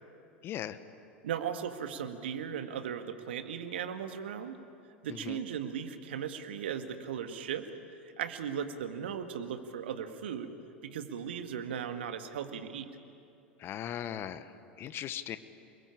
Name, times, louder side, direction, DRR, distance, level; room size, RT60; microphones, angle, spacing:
voice 1, 0.4-0.8 5.1-5.4 13.6-14.5 14.8-15.4, left 11 dB, 40° left, 13 dB, 1.3 m, -38 dB
voice 2, 1.2-4.6 5.0-7.7 8.2-10.5 10.8-12.9, right 8 dB, 70° right, 8 dB, 1.9 m, -37 dB
29.0 x 21.5 x 8.7 m, 2.7 s
figure-of-eight pair, 85°, 6 cm